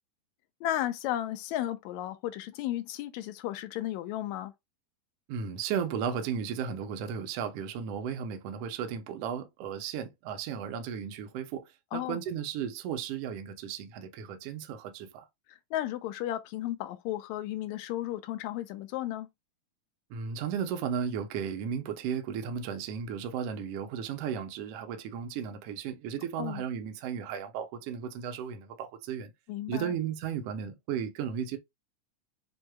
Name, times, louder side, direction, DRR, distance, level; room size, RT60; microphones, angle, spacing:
voice 1, 0.6-4.5 11.9-12.2 15.5-19.3 26.4-26.6 29.5-30.0, left 13 dB, 80° left, 1.8 m, -34 dB
voice 2, 5.3-15.2 20.1-29.3 29.7-31.6, right 7 dB, 80° right, 1.4 m, -35 dB
6.1 x 2.7 x 2.2 m
omnidirectional pair, 3.6 m